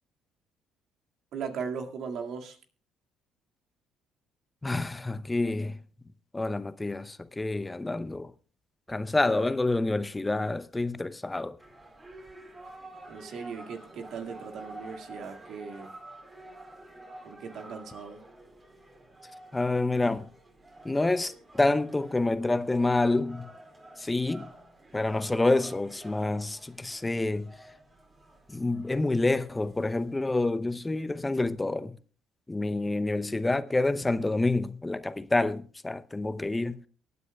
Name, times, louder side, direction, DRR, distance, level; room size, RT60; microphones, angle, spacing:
voice 1, 1.3-2.6 13.1-15.9 17.2-18.2, right 6 dB, 65° right, 2.0 m, -38 dB
voice 2, 4.6-5.8 6.3-8.3 8.9-11.6 19.5-20.3 20.8-23.5 24.0-24.5 24.9-27.5 28.5-32.0 32.5-36.8, left 2 dB, 15° left, 0.7 m, -28 dB
sound 1, 11.6-30.1, right 1 dB, 30° right, 4.3 m, -49 dB
23.5 x 9.5 x 2.3 m
hypercardioid pair, 60°, 0 cm